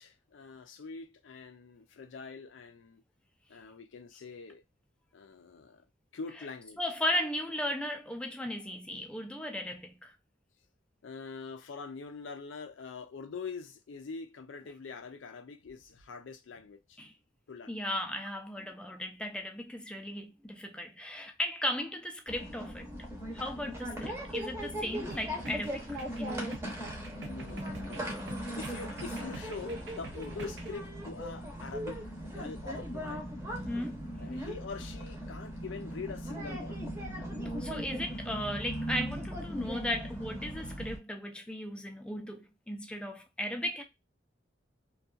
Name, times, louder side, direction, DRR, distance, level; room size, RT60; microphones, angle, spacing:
voice 1, 0.0-3.0 3.5-4.6 5.1-5.8 6.1-6.8 11.0-17.0 17.5-17.8 27.2-28.1 28.5-33.3 34.2-36.8, left 4 dB, 85° left, 0.4 m, -44 dB
voice 2, 6.8-10.2 17.0-17.1 17.7-22.9 23.3-26.7 33.7-34.1 37.6-43.8, left 1 dB, 5° left, 0.4 m, -36 dB
sound 1, 22.3-41.0, equal, 15° right, 0.7 m, -39 dB
sound 2, 25.1-30.8, right 3 dB, 65° right, 0.5 m, -47 dB
2.6 x 2.3 x 2.3 m
head